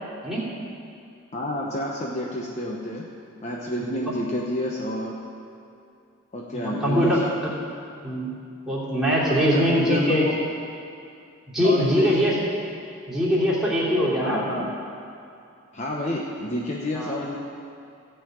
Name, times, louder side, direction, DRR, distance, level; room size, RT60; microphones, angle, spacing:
voice 1, 1.3-3.1 3.4-5.3 6.3-7.2 9.3-10.3 11.6-12.3 14.2-14.7 15.7-17.4, left 1 dB, 35° left, -1 dB, 0.8 m, -29 dB
voice 2, 6.5-7.5 8.0-8.3 8.7-10.3 11.5-12.4 13.1-14.4 16.9-17.2, equal, ahead, -9 dB, 3.0 m, -22 dB
15.5 x 5.7 x 8.7 m, 2.5 s
head